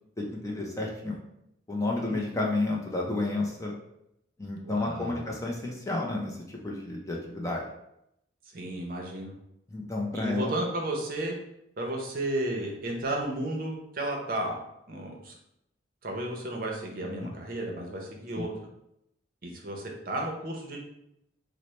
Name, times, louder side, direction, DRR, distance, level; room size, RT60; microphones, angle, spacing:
voice 1, 0.2-1.2 1.7-3.7 4.4-7.7 9.7-10.5 17.1-17.3 18.3-18.5, left 2 dB, 15° left, -1 dB, 0.4 m, -31 dB
voice 2, 4.6-5.3 8.5-9.3 10.1-11.4 11.8-14.6 14.9-15.4 16.0-18.5 19.4-20.8, right 1 dB, 50° right, 1 dB, 0.7 m, -33 dB
4.2 x 2.0 x 3.1 m, 0.80 s
head